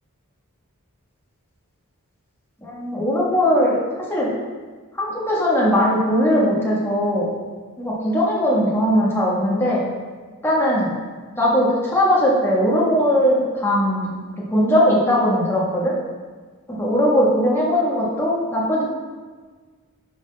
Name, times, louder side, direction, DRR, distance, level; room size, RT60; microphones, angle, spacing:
voice 1, 2.6-3.8 4.1-4.3 4.9-7.3 7.8-9.8 10.4-10.9 11.4-14.1 14.5-15.9 16.7-18.8, equal, 10° left, -6 dB, 1.8 m, -19 dB
10.5 x 4.2 x 3.6 m, 1.4 s
head